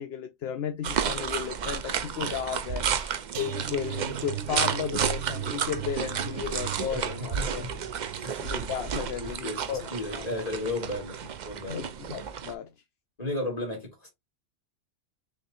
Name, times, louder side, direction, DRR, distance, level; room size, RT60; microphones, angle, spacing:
voice 1, 0.0-2.9 3.4-7.8 8.4-10.3 11.7-12.7, left 8 dB, 65° left, 0.8 m, -34 dB
sound 1, 0.8-12.5, right 7 dB, 55° right, 0.5 m, -32 dB
sound 2, 3.3-10.4 10.8-11.1 11.4-11.5, right 10 dB, 75° right, 0.9 m, -39 dB
voice 2, 7.3-7.7 8.2-8.3 9.2-11.2 11.4-11.9 13.2-14.1, left 2 dB, 30° left, 2.1 m, -34 dB
6.4 x 2.6 x 2.6 m
omnidirectional pair, 1.3 m